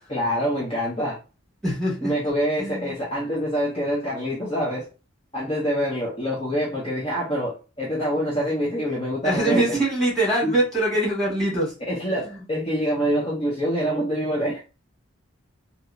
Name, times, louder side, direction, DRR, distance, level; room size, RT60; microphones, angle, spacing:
voice 1, 0.1-1.2 2.0-4.9 5.3-9.8 10.4-10.5 11.8-14.6, equal, 25° left, -5 dB, 0.9 m, -25 dB
voice 2, 1.6-2.1 2.6-2.9 9.2-11.7 12.2-12.4, right 1 dB, 5° left, -6 dB, 2.0 m, -23 dB
3.6 x 2.9 x 2.5 m, 0.32 s
head